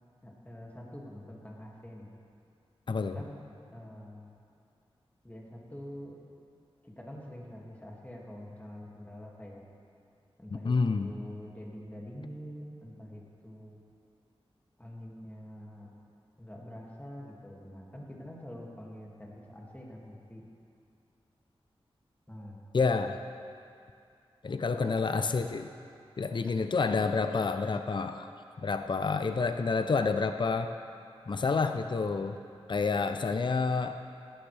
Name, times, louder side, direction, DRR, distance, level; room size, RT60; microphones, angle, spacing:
voice 1, 0.2-2.1 3.1-4.3 5.2-6.2 6.8-9.6 10.4-13.8 14.8-15.9 16.4-20.4 22.3-22.6 24.8-25.2 26.4-26.5, equal, 15° left, -3 dB, 2.3 m, -45 dB
voice 2, 2.9-3.2 10.5-11.1 22.7-23.2 24.4-25.7 26.2-28.3 28.6-30.7 31.3-32.4 32.7-34.0, left 4 dB, 50° left, 8 dB, 0.5 m, -29 dB
16.5 x 11.5 x 3.4 m, 2.4 s
wide cardioid pair, 65°, 10 cm